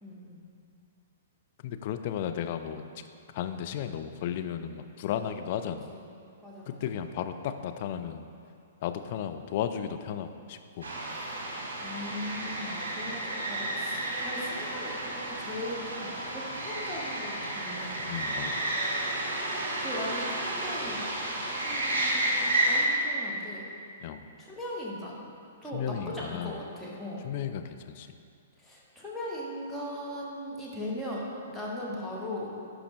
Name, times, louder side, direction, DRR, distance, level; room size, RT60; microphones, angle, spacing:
voice 1, 0.0-0.4 5.9-6.0 6.4-7.0 11.8-17.9 19.8-21.1 21.6-23.7 24.4-25.2 25.6-27.2 28.6-31.2 31.5-32.5, left 1 dB, 5° left, -6 dB, 1.4 m, -39 dB
voice 2, 1.6-2.8 3.3-5.9 6.7-8.3 8.8-10.9 18.1-18.6 24.0-24.2 25.7-26.6 27.2-28.1, left 9 dB, 45° left, 8 dB, 0.4 m, -34 dB
sound 1, 10.8-22.8, right 1 dB, 55° right, 1.4 m, -32 dB
11.0 x 5.0 x 3.2 m, 2.4 s
figure-of-eight pair, 110°, 0 cm